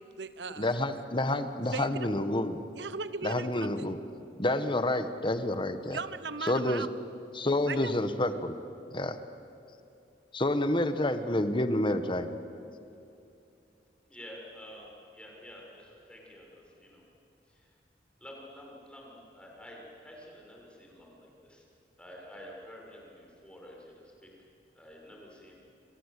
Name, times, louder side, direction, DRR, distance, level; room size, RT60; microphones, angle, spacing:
voice 1, 0.0-0.8 1.7-2.1 2.7-3.9 5.9-6.9 7.6-7.9, right 4 dB, 80° right, 14 dB, 1.1 m, -38 dB
voice 2, 0.6-2.6 3.2-4.0 4.4-6.0 6.4-6.8 7.3-8.5 8.9-9.2 10.3-12.3, left 1 dB, 30° left, 10 dB, 1.5 m, -29 dB
voice 3, 14.1-17.0 18.2-21.6 22.0-24.3 24.7-25.5, equal, 5° left, -2 dB, 6.7 m, -49 dB
30.0 x 23.5 x 8.4 m, 2.7 s
head